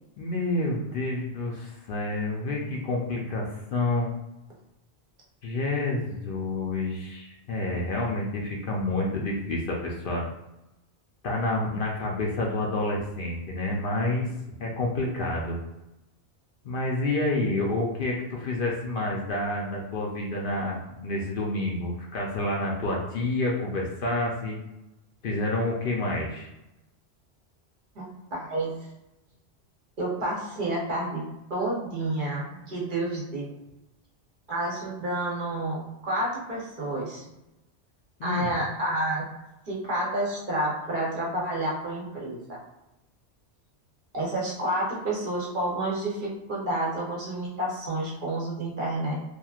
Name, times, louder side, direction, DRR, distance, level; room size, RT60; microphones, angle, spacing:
voice 1, 0.2-4.1 5.4-10.2 11.2-14.3 14.6-15.6 16.6-24.6 25.2-26.5 38.2-38.5, left 2 dB, 60° left, -2 dB, 0.7 m, -29 dB
voice 2, 28.0-28.8 30.0-31.2 31.5-33.5 34.5-37.2 38.2-39.2 39.7-42.6 44.1-49.2, right 1 dB, 50° right, -4 dB, 0.9 m, -29 dB
2.9 x 2.4 x 2.3 m, 0.94 s
omnidirectional pair, 1.1 m